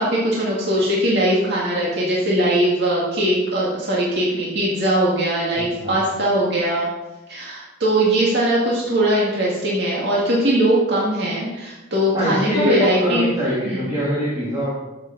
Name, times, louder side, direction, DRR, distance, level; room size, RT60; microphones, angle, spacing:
voice 1, 0.0-6.9 7.3-13.3 13.6-13.8, right 1 dB, 60° right, -5 dB, 2.1 m, -20 dB
voice 2, 5.6-6.0 12.1-14.7, equal, 20° right, -8 dB, 2.7 m, -23 dB
13.0 x 7.3 x 4.0 m, 1.1 s
head